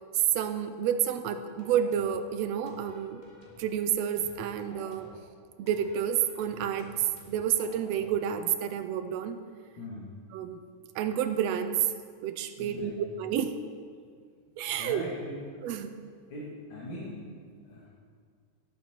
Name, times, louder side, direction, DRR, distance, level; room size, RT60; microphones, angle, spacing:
voice 1, 0.3-3.2 3.6-5.1 5.6-9.4 10.3-10.6 10.9-11.9 12.2-13.6 14.6-15.0 15.6-15.9, right 9 dB, 80° right, 9 dB, 1.6 m, -30 dB
sound 1, 1.6-2.2 2.7-3.7 4.2-5.2 5.7-8.2, left 1 dB, 20° left, 1.4 m, -53 dB
voice 2, 9.7-10.1 12.6-13.0 14.7-15.4 16.3-17.9, left 1 dB, 75° left, -8 dB, 3.2 m, -41 dB
18.0 x 6.7 x 4.4 m, 2.1 s
omnidirectional pair, 3.4 m